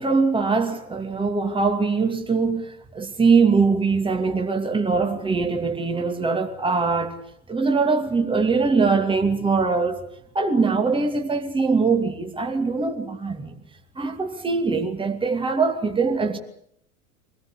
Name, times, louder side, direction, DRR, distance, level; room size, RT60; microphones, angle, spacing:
voice 1, 0.0-7.1 7.5-10.0 10.3-13.5 14.0-16.4, right 4 dB, 10° right, 2.6 m, -22 dB
24.0 x 19.0 x 8.2 m
hypercardioid pair, 85°, 42 cm